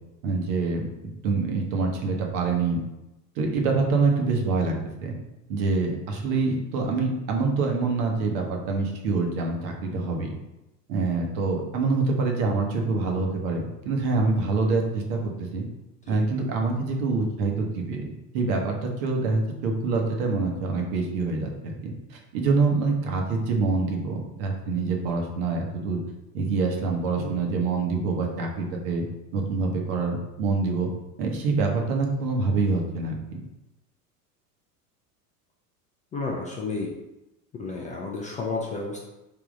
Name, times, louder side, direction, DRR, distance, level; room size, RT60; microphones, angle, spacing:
voice 1, 0.2-2.8 3.4-4.7 5.0-5.2 5.5-10.4 10.9-15.7 16.1-18.1 18.3-26.0 26.3-29.0 29.3-30.9 31.2-33.4, right 3 dB, 60° right, 1 dB, 1.1 m, -26 dB
voice 2, 36.1-36.9 37.5-39.0, left 3 dB, 15° left, -2 dB, 0.3 m, -31 dB
3.5 x 2.9 x 3.6 m, 0.95 s
hypercardioid pair, 85°, 49 cm